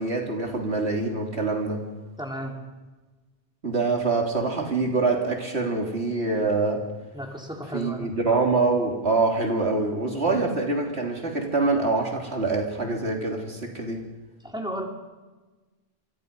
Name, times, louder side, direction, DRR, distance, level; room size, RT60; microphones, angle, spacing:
voice 1, 0.0-1.8 3.6-6.8 7.7-14.0, right 3 dB, 85° right, 1 dB, 3.8 m, -25 dB
voice 2, 2.2-2.6 7.1-8.1 10.2-10.4 14.4-14.9, equal, 5° right, 0 dB, 4.1 m, -34 dB
27.5 x 24.0 x 5.5 m, 1.2 s
omnidirectional pair, 1.1 m